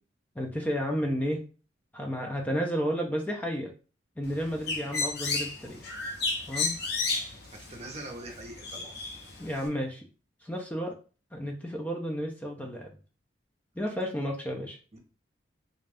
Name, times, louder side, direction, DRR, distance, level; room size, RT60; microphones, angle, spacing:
voice 1, 0.4-1.4 1.9-3.7 4.2-5.9 6.5-6.8 9.4-10.1 10.4-11.0 11.3-13.0 13.8-14.8, equal, 10° left, 1 dB, 0.4 m, -32 dB
Bird, 4.2-9.7, left 4 dB, 60° left, 0.7 m, -33 dB
voice 2, 7.5-8.9 14.9-15.0, right 1 dB, 35° right, 1 dB, 0.6 m, -42 dB
2.5 x 2.2 x 3.3 m, 0.35 s
head